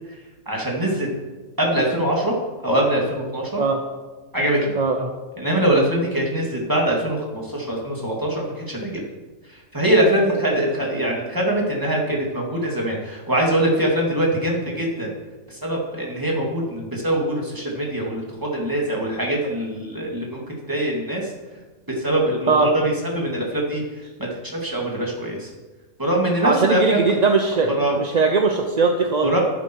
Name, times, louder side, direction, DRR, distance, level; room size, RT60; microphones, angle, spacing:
voice 1, 0.5-1.1 1.6-2.3 2.6-3.6 4.3-4.8 5.4-9.0 9.5-15.1 15.5-20.4 20.7-21.3 21.9-25.5 26.0-27.2 27.7-28.0 29.2-29.4, right 1 dB, 15° right, -2 dB, 2.5 m, -23 dB
voice 2, 4.7-5.1 22.5-22.7 26.4-27.7 28.0-29.4, right 4 dB, 40° right, 4 dB, 0.7 m, -19 dB
11.5 x 11.0 x 4.7 m, 1.3 s
omnidirectional pair, 1.5 m